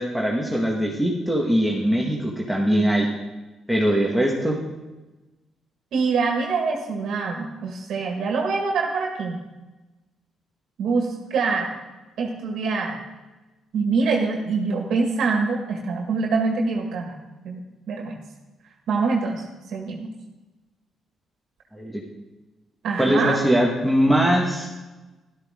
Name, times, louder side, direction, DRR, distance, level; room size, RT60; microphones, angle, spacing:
voice 1, 0.0-3.1 3.7-4.6 21.7-22.0 23.0-24.7, equal, ahead, -2 dB, 1.8 m, -21 dB
voice 2, 5.9-9.4 10.8-11.7 12.2-13.0 13.7-17.1 17.4-17.6 17.9-18.2 18.9-19.4 19.7-20.1 22.8-23.4, right 4 dB, 75° right, 1 dB, 1.8 m, -24 dB
12.5 x 12.5 x 3.8 m, 1.1 s
cardioid pair, 90°, 0 cm